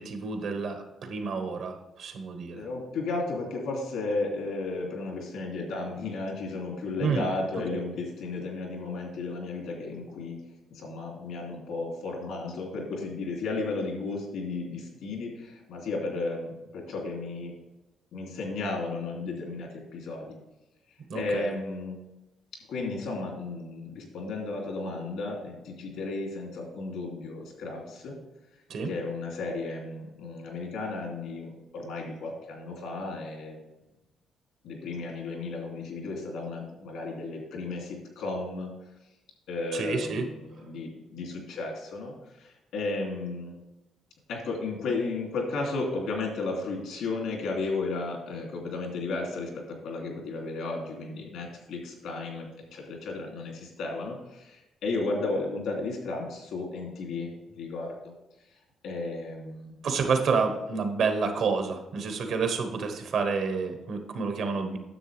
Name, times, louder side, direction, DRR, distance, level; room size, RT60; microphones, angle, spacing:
voice 1, 0.0-2.6 7.0-7.2 7.7-7.8 21.1-21.5 28.7-28.9 39.7-40.2 59.8-64.8, right 5 dB, 70° right, 6 dB, 1.3 m, -29 dB
voice 2, 2.5-10.4 10.7-17.5 18.1-20.4 21.1-22.0 22.7-28.2 28.8-33.6 34.6-38.7 39.5-43.5 44.3-58.1 58.8-59.8, left 3 dB, 85° left, 0 dB, 2.7 m, -34 dB
9.9 x 7.1 x 3.4 m, 0.96 s
cardioid pair, 90°, 0 cm